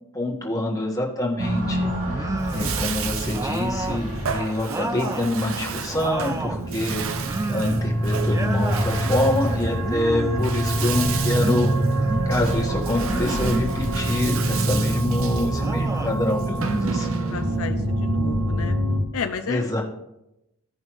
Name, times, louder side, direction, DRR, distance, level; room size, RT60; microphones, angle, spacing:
voice 1, 0.1-7.0 7.5-11.7 12.2-17.2 19.5-19.8, left 1 dB, 15° left, -2 dB, 1.5 m, -26 dB
sound 1, 1.4-19.0, right 1 dB, 85° right, 2.5 m, -26 dB
sound 2, 2.1-2.9 3.3-5.3 5.7-6.7 7.2-7.9 8.2-8.9 9.8-10.5 11.4-12.3 13.0-13.7 14.4-15.0 15.5-16.2 16.5-17.7, right 2 dB, 15° right, 0.4 m, -31 dB
Bathtub (filling or washing), 2.4-17.5, right 7 dB, 65° right, 0.7 m, -34 dB
voice 2, 17.3-18.7 19.1-19.8, left 6 dB, 65° left, 8 dB, 0.5 m, -32 dB
15.5 x 5.4 x 3.1 m, 0.88 s
head